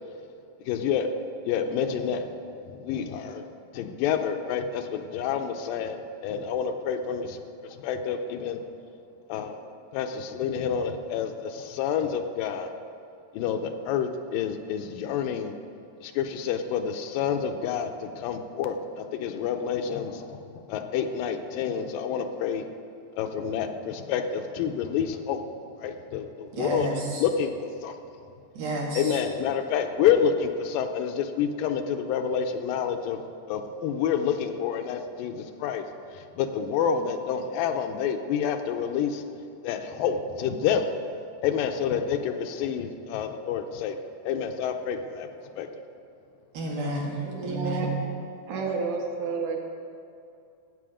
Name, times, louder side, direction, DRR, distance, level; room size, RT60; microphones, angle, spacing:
voice 1, 0.7-1.1 1.5-3.4 3.7-7.4 7.8-8.6 9.3-9.6 9.9-12.7 13.3-15.5 16.0-22.7 23.2-25.4 25.8-26.9 27.2-28.0 28.9-33.2 33.5-35.8 36.1-39.2 39.6-40.9 41.4-44.0 44.2-45.3 45.6-45.7, left 7 dB, 80° left, 6 dB, 2.2 m, -28 dB
voice 2, 26.5-27.2 28.6-29.2 46.5-48.0, right 2 dB, 90° right, -3 dB, 3.7 m, -31 dB
voice 3, 47.2-48.1 48.5-49.6, right 4 dB, 65° right, 1 dB, 2.0 m, -30 dB
14.5 x 8.2 x 5.0 m, 2.5 s
omnidirectional pair, 4.1 m